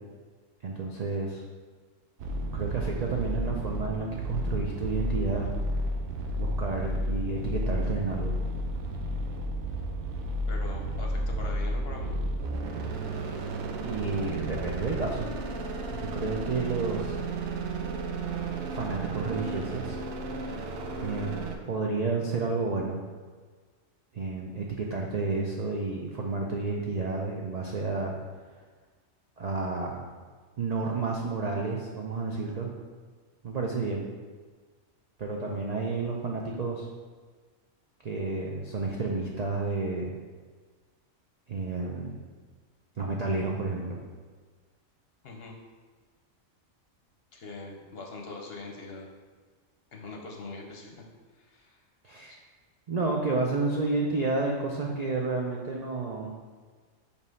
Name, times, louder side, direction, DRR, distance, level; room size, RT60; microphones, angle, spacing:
voice 1, 0.6-1.4 2.5-5.5 6.4-8.3 13.8-15.3 15.9-17.2 18.7-20.0 21.0-21.3 21.6-23.0 24.1-28.2 29.4-30.1 30.6-32.7 33.4-34.1 35.2-36.9 38.0-40.2 41.5-42.2 43.0-44.0 52.0-52.4 52.9-56.4, right 3 dB, 55° right, -1 dB, 0.4 m, -31 dB
sound 1, 2.2-21.6, right 1 dB, 85° right, 1.1 m, -32 dB
voice 2, 10.5-12.1 45.2-45.5 47.3-49.1 49.9-51.0 51.4-51.8 52.3-52.4, left 3 dB, 55° left, 1 dB, 0.9 m, -42 dB
5.3 x 3.4 x 5.2 m, 1.5 s
omnidirectional pair, 1.4 m